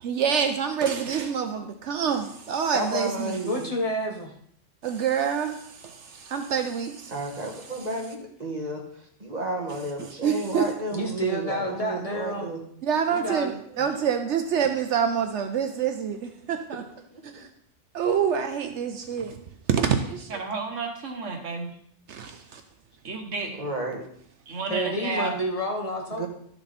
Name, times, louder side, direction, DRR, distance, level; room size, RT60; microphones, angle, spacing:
voice 1, 0.0-3.4 4.8-7.1 10.2-10.7 12.8-16.8 17.2-17.5 17.9-19.4 19.7-20.4 22.1-22.6, right 7 dB, 70° right, 7 dB, 1.0 m, -27 dB
voice 2, 2.7-3.7 7.1-8.8 9.2-12.6 23.5-24.0 26.1-26.3, right 1 dB, 35° right, 0 dB, 1.9 m, -32 dB
voice 3, 3.4-4.3 10.9-12.5 13.1-13.6 24.7-26.3, equal, 30° left, -1 dB, 1.4 m, -29 dB
voice 4, 20.3-21.7 23.0-23.5 24.5-25.4, right 4 dB, 90° right, 3 dB, 1.7 m, -31 dB
12.0 x 6.9 x 4.2 m, 0.68 s
omnidirectional pair, 1.2 m